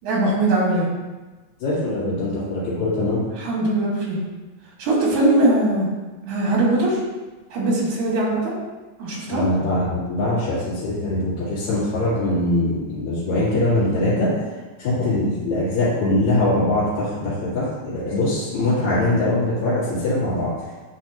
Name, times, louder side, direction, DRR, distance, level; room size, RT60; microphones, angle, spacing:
voice 1, 0.0-0.8 3.4-4.2 4.8-5.9 6.3-7.0 7.5-8.5 9.0-9.4, right 2 dB, 85° right, -4 dB, 3.3 m, -20 dB
voice 2, 1.6-3.2 9.3-14.4 14.8-20.6, left 1 dB, 70° left, -12 dB, 3.2 m, -22 dB
10.0 x 4.1 x 2.9 m, 1.2 s
omnidirectional pair, 3.4 m